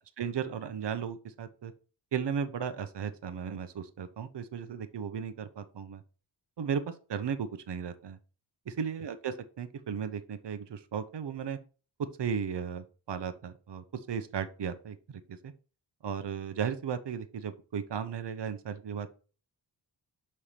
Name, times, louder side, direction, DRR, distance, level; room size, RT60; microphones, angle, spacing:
voice 1, 0.2-1.7 2.1-6.0 6.6-8.2 8.7-11.6 12.2-15.5 16.0-19.2, right 7 dB, 65° right, 10 dB, 0.9 m, -35 dB
5.7 x 4.3 x 5.0 m, 0.36 s
wide cardioid pair, 80°, 45 cm